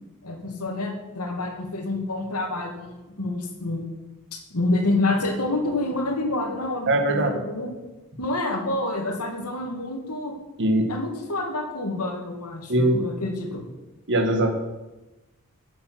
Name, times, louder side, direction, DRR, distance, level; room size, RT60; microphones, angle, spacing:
voice 1, 0.2-3.9 4.3-7.7 8.2-10.3 10.9-13.7, left 2 dB, 85° left, 3 dB, 2.4 m, -28 dB
voice 2, 6.9-7.4 10.6-10.9 12.7-12.9 14.1-14.5, right 1 dB, 55° right, 5 dB, 1.8 m, -21 dB
9.6 x 8.5 x 7.9 m, 1.1 s
head